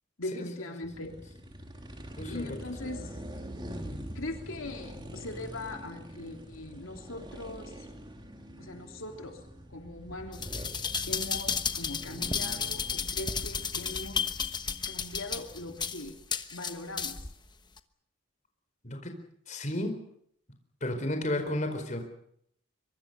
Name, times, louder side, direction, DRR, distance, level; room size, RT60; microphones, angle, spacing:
voice 1, 0.2-1.1 2.3-3.2 4.1-7.8 8.6-9.4 9.7-10.5 11.1-14.2 14.8-16.1 16.5-17.2, left 2 dB, 85° left, 3 dB, 3.3 m, -40 dB
sound 1, 0.8-15.9, equal, 25° right, 3.4 m, -45 dB
voice 2, 2.2-2.5 18.8-19.1 19.5-20.0 20.8-22.0, left 1 dB, 35° left, 5 dB, 4.5 m, -32 dB
sound 2, 10.3-17.3 17.8-17.9, left 6 dB, 20° left, 1.2 m, -33 dB
24.5 x 23.5 x 6.9 m, 0.71 s
head